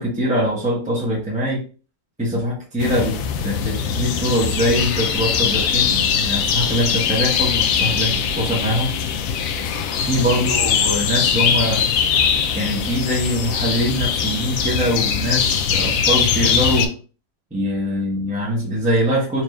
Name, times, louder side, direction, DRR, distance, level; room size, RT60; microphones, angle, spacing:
voice 1, 0.0-1.7 2.2-8.9 10.1-12.0 12.5-17.0 17.5-19.4, equal, 5° right, -6 dB, 0.8 m, -23 dB
sound 1, 2.8-16.9, left 7 dB, 70° left, 0.9 m, -21 dB
4.2 x 2.6 x 3.1 m, 0.36 s
omnidirectional pair, 1.7 m